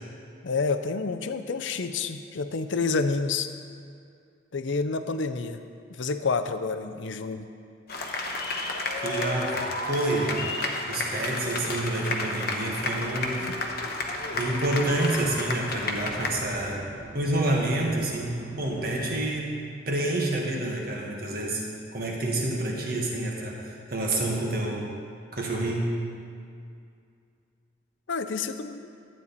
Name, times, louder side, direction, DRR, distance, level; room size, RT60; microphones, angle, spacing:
voice 1, 0.4-3.5 4.5-5.6 6.0-7.4 13.5-13.6 28.1-28.8, left 4 dB, 70° left, 9 dB, 0.6 m, -28 dB
sound 1, 7.9-16.3, left 2 dB, 50° left, 0.9 m, -31 dB
voice 2, 9.0-10.4 10.9-13.5 14.3-16.8 17.1-19.5 19.9-21.6 21.9-24.9 25.3-26.0, right 1 dB, 45° right, -2 dB, 1.6 m, -28 dB
sound 2, 12.6-19.3, right 1 dB, 65° right, 1.1 m, -47 dB
12.0 x 8.9 x 4.1 m, 2.4 s
head